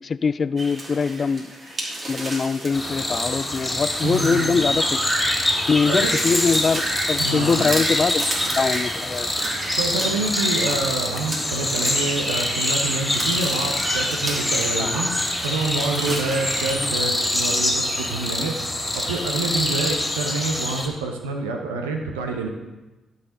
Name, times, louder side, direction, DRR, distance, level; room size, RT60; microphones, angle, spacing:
voice 1, 0.0-1.5 2.1-5.0 5.7-6.8 7.1-9.3 14.8-14.9 17.5-17.6 18.4-18.5, left 5 dB, 40° left, 17 dB, 0.3 m, -23 dB
sound 1, 0.6-16.7, right 1 dB, 40° right, 2.6 m, -31 dB
sound 2, 2.7-20.9, left 1 dB, 15° left, 2.3 m, -25 dB
voice 2, 4.0-4.6 5.9-6.1 7.2-7.6 9.8-15.1 15.4-18.6 18.9-22.5, right 3 dB, 80° right, 3 dB, 0.8 m, -27 dB
13.5 x 6.6 x 3.8 m, 1.1 s
figure-of-eight pair, 40°, 0 cm